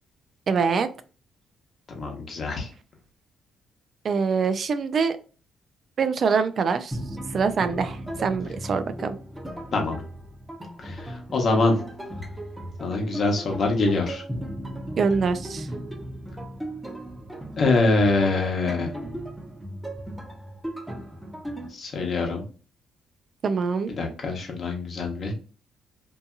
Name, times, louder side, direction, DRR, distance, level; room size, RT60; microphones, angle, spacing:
voice 1, 0.5-0.9 4.0-5.2 6.0-7.0 7.3-9.2 15.0-15.7 23.4-23.9, right 5 dB, 50° right, 10 dB, 0.3 m, -24 dB
voice 2, 2.0-2.7 9.7-10.0 10.8-11.8 12.8-14.2 17.6-18.9 21.7-22.4 23.9-25.3, left 3 dB, 50° left, 1 dB, 1.0 m, -24 dB
sound 1, 6.9-21.7, right 1 dB, 5° right, 0.8 m, -36 dB
2.7 x 2.6 x 2.3 m, 0.36 s
cardioid pair, 90°, 0 cm